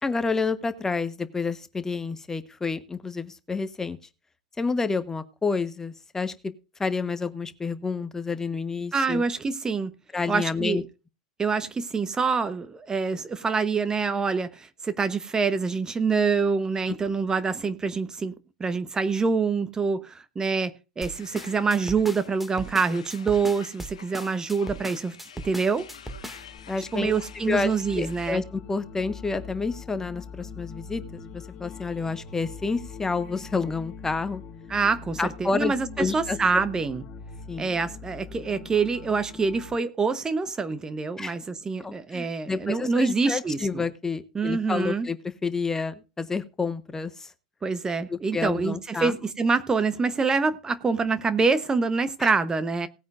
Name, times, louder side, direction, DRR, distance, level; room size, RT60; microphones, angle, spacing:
voice 1, 0.0-4.0 4.6-6.5 6.8-9.2 10.1-10.8 26.7-27.1 27.4-34.4 35.2-36.4 37.5-37.7 41.2-41.3 41.8-47.3 48.1-49.1 52.2-52.3, left 4 dB, 15° left, 1.1 m, -29 dB
voice 2, 8.9-9.9 10.3-10.8 11.4-18.3 18.6-25.2 25.4-25.9 26.9-28.4 34.7-37.0 37.6-43.8 44.3-45.1 47.6-52.9, right 4 dB, 20° right, 1.0 m, -26 dB
sound 1, 21.0-28.3, left 8 dB, 75° left, 1.4 m, -48 dB
sound 2, 21.0-26.6, right 1 dB, 5° right, 2.1 m, -39 dB
sound 3, 25.6-39.7, left 5 dB, 35° left, 2.5 m, -43 dB
18.5 x 9.2 x 2.5 m
figure-of-eight pair, 85°, 4 cm